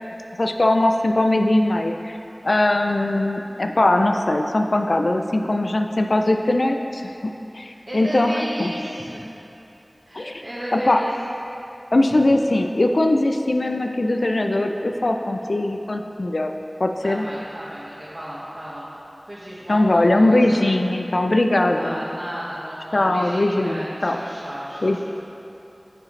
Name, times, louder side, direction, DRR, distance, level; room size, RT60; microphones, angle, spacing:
voice 1, 0.4-2.2 2.4-7.1 7.5-8.7 10.1-10.4 10.9-11.0 11.9-16.5 16.8-17.3 19.7-22.0 22.9-24.2 24.8-25.0, left 1 dB, 85° left, 4 dB, 0.4 m, -20 dB
voice 2, 2.4-2.9 7.5-9.3 10.1-11.1 17.0-18.9 19.3-20.6 21.7-25.0, equal, 40° right, -9 dB, 1.4 m, -34 dB
8.8 x 7.3 x 3.2 m, 2.8 s
wide cardioid pair, 40°, 0 cm